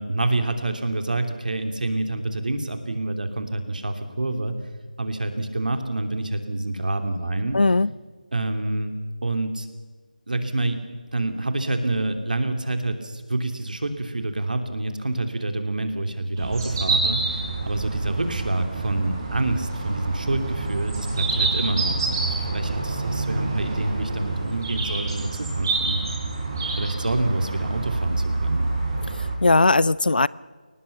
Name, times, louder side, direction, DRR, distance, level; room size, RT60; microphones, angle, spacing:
voice 1, 0.0-4.6 5.0-7.6 8.3-8.9 9.2-9.7 10.3-10.8 11.1-26.2 26.8-28.7, right 2 dB, 65° right, 3.0 m, -27 dB
voice 2, 7.5-7.9 29.1-30.3, left 3 dB, 80° left, 0.6 m, -19 dB
sound 1, 16.4-29.4, right 3 dB, 25° right, 4.4 m, -27 dB
22.5 x 19.0 x 7.2 m
figure-of-eight pair, 170°, 5 cm